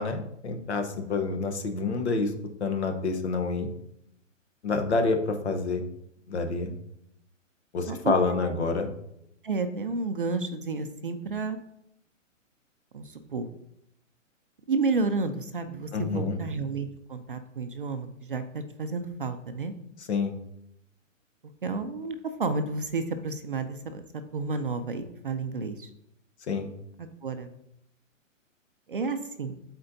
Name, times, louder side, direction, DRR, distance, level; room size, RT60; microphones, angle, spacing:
voice 1, 0.0-2.3 2.6-3.7 4.6-5.8 6.3-6.7 7.7-8.9 15.9-16.4 20.1-20.3 26.5-26.7, left 4 dB, 55° left, 6 dB, 1.0 m, -27 dB
voice 2, 8.3-8.7 9.4-11.6 12.9-13.5 14.7-19.7 21.6-24.0 24.3-25.9 27.0-27.5 28.9-29.6, right 4 dB, 45° right, 8 dB, 0.4 m, -31 dB
11.5 x 4.4 x 2.6 m, 0.79 s
hypercardioid pair, 175°, 39 cm